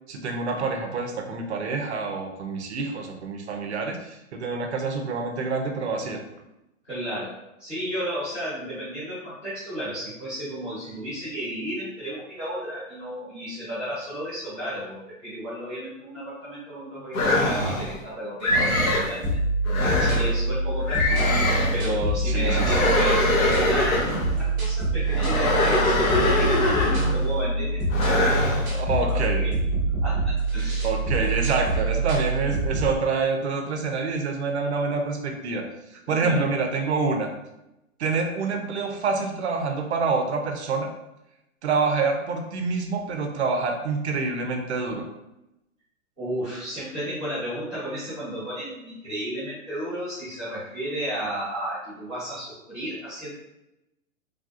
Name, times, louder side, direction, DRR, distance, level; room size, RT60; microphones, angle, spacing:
voice 1, 0.1-6.2 22.3-23.0 28.7-29.4 30.8-35.6 35.9-37.3 38.0-40.9 41.6-45.0, right 4 dB, 55° right, 4 dB, 0.5 m, -27 dB
voice 2, 6.8-7.3 7.6-19.4 20.0-21.3 21.7-24.0 24.3-29.6 30.0-31.3 36.1-36.5 46.2-53.3, equal, 10° left, -19 dB, 0.9 m, -33 dB
sound 1, 17.1-17.9 18.4-19.1 19.7-20.3 20.9-21.8 22.4-24.3 25.1-27.2 27.9-28.7, left 2 dB, 80° left, 0.9 m, -23 dB
sound 2, 19.2-32.9, right 2 dB, 15° right, 0.7 m, -25 dB
3.3 x 2.6 x 2.4 m, 0.90 s
hypercardioid pair, 175°, 41 cm